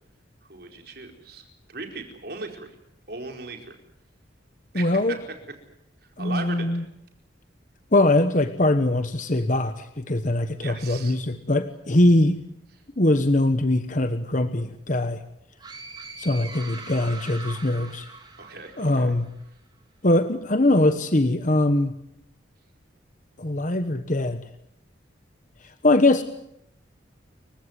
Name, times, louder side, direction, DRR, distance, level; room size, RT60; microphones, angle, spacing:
voice 1, 0.4-2.8 3.1-3.8 4.7-5.4 6.0-6.8 10.5-11.2 12.7-12.8 18.4-19.1, right 3 dB, 55° right, 4 dB, 4.6 m, -38 dB
voice 2, 4.7-5.1 6.2-6.8 7.9-12.4 13.0-15.2 16.2-18.1 18.8-19.2 20.0-21.9 23.4-24.4 25.8-26.2, left 1 dB, 40° left, 9 dB, 1.2 m, -22 dB
sound 1, 15.6-19.3, right 3 dB, 20° right, 3.9 m, -41 dB
29.0 x 16.0 x 9.6 m, 0.77 s
head